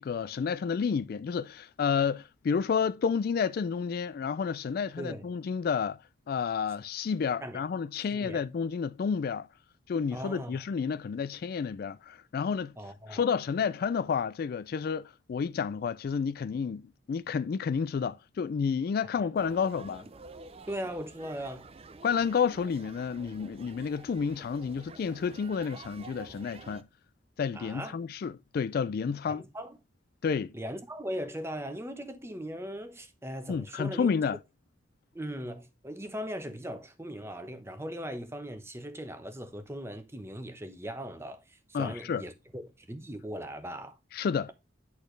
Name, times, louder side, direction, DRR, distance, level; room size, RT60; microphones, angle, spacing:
voice 1, 0.0-6.0 6.3-9.5 9.9-12.7 13.1-20.0 22.0-26.9 27.4-29.4 30.2-30.5 33.5-34.4 41.7-42.2 44.1-44.5, left 6 dB, 55° left, 0.3 m, -30 dB
voice 2, 8.1-8.4 10.1-10.6 12.8-13.3 19.2-19.3 20.7-21.7 27.5-28.0 29.3-29.8 30.5-34.1 35.1-44.0, equal, 15° right, 0.9 m, -39 dB
sound 1, 19.4-26.8, right 3 dB, 30° right, 0.5 m, -49 dB
10.0 x 4.3 x 3.2 m
head